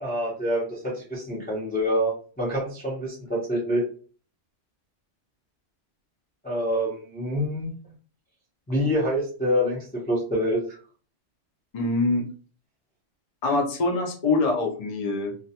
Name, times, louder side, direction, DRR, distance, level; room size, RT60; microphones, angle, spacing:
voice 1, 0.0-3.8 6.4-7.7 8.7-10.8, equal, 10° left, -5 dB, 0.6 m, -26 dB
voice 2, 11.7-12.3 13.4-15.3, left 3 dB, 70° left, 2 dB, 0.3 m, -24 dB
2.4 x 2.2 x 2.7 m, 0.40 s
omnidirectional pair, 1.3 m